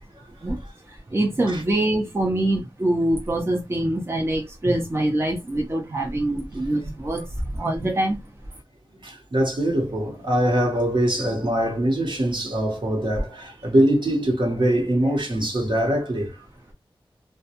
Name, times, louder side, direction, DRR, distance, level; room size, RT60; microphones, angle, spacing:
voice 1, 1.1-7.3 7.5-8.2, right 1 dB, 30° right, 0.6 m, -24 dB
voice 2, 9.0-16.3, right 1 dB, 60° right, 1.0 m, -23 dB
2.2 x 2.1 x 2.7 m
wide cardioid pair, 55°, 9 cm